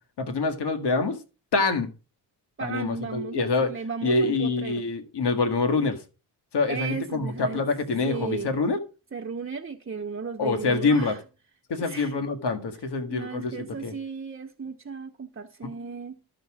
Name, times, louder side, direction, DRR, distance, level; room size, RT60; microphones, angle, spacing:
voice 1, 0.2-1.2 1.5-1.9 2.6-3.7 4.0-6.0 6.5-8.8 10.4-11.1 11.7-13.5 13.8-13.9, left 3 dB, 80° left, 1.8 m, -25 dB
voice 2, 2.6-4.9 6.7-7.7 8.0-8.5 9.1-11.2 11.8-12.2 13.1-16.3, right 5 dB, 30° right, 1.0 m, -35 dB
12.5 x 6.8 x 4.9 m
cardioid pair, 75°, 41 cm